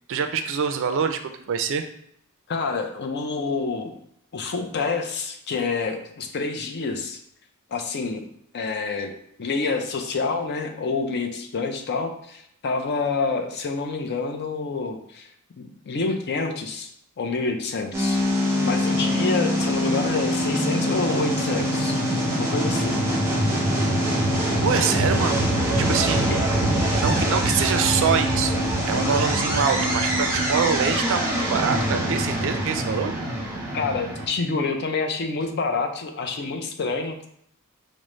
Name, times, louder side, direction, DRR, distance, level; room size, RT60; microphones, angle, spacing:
voice 1, 0.1-1.9 24.6-25.5 25.8-26.3 26.9-33.1, right 6 dB, 60° right, 7 dB, 0.4 m, -25 dB
voice 2, 2.5-3.9 4.3-7.2 7.7-8.2 8.5-9.1 9.4-15.3 15.6-16.9 17.2-18.2 18.6-22.0 22.4-23.0 26.3-26.4 33.7-37.2, left 4 dB, 50° left, 5 dB, 0.5 m, -27 dB
sound 1, 17.9-34.3, equal, 10° right, 0.9 m, -23 dB
5.1 x 2.0 x 3.1 m, 0.70 s
head